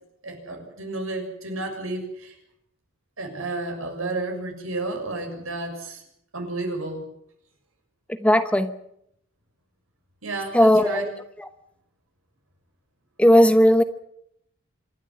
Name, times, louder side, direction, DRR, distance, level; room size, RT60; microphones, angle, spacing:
voice 1, 0.2-2.3 3.2-6.0 6.3-7.0 10.2-11.1, right 2 dB, 85° right, 4 dB, 6.7 m, -31 dB
voice 2, 8.2-8.7 10.5-11.1 11.4-11.5 13.2-13.8, equal, 5° left, 10 dB, 0.9 m, -17 dB
26.5 x 12.5 x 9.8 m, 0.75 s
head